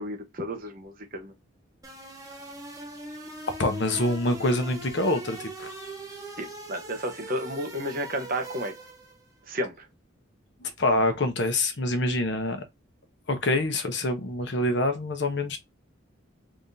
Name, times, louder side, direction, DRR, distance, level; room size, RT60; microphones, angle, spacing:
voice 1, 0.0-1.3 6.4-8.7 9.5-9.9, equal, 45° right, 0.9 m, -32 dB
sound 1, 1.8-9.3, right 1 dB, 20° right, 0.8 m, -41 dB
voice 2, 3.6-5.9 10.6-12.7 13.3-15.6, left 2 dB, 60° left, 0.8 m, -26 dB
3.5 x 3.5 x 2.7 m
head